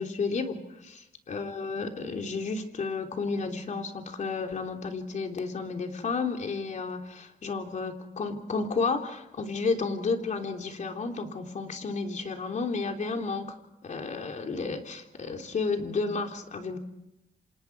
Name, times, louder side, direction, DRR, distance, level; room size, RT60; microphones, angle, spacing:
voice 1, 0.0-13.5 13.8-16.8, left 4 dB, 50° left, 4 dB, 3.3 m, -32 dB
29.0 x 26.5 x 4.8 m, 0.88 s
cardioid pair, 100°, 16 cm